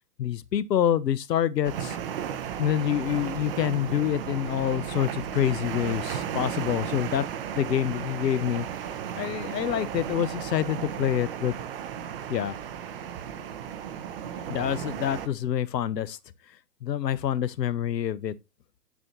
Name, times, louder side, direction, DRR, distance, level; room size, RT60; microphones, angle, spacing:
voice 1, 0.2-2.0 2.6-7.2 7.5-8.7 9.2-11.5 12.3-12.6 14.5-16.2 16.8-18.3, left 10 dB, 90° left, 0.7 m, -27 dB
sound 1, 1.6-15.3, right 9 dB, 35° right, 0.6 m, -34 dB
7.9 x 4.1 x 2.9 m
hypercardioid pair, 135°, 48 cm